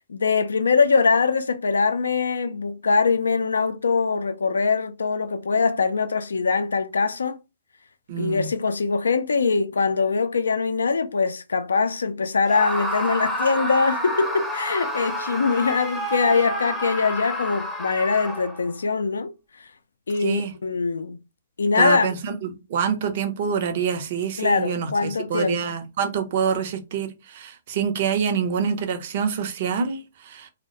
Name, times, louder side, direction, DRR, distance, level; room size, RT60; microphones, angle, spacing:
voice 1, 0.1-7.4 8.1-19.3 20.1-21.2 21.6-22.1 24.4-25.6, left 4 dB, 85° left, 0.3 m, -22 dB
voice 2, 8.1-8.5 20.2-20.5 21.7-30.5, right 7 dB, 55° right, 0.5 m, -26 dB
Screaming, 12.5-18.7, equal, 5° left, 0.6 m, -29 dB
2.2 x 2.1 x 2.7 m
hypercardioid pair, 130°, 0 cm